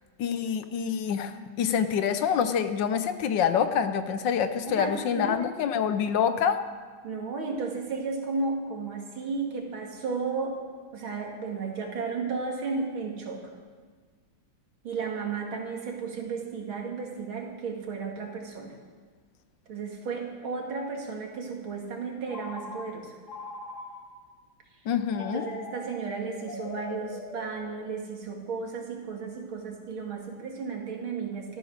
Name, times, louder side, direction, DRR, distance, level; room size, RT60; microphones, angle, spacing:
voice 1, 0.2-1.3 1.6-6.6 24.9-25.5, left 7 dB, 70° left, 10 dB, 1.4 m, -26 dB
voice 2, 4.8-5.7 7.0-10.6 10.9-13.4 14.8-18.7 19.7-23.1 25.3-31.6, right 4 dB, 85° right, 1 dB, 3.0 m, -34 dB
Telephone, 22.3-24.3 25.1-28.2, left 3 dB, 55° left, 2.2 m, -42 dB
14.0 x 13.5 x 6.5 m, 1.5 s
omnidirectional pair, 2.2 m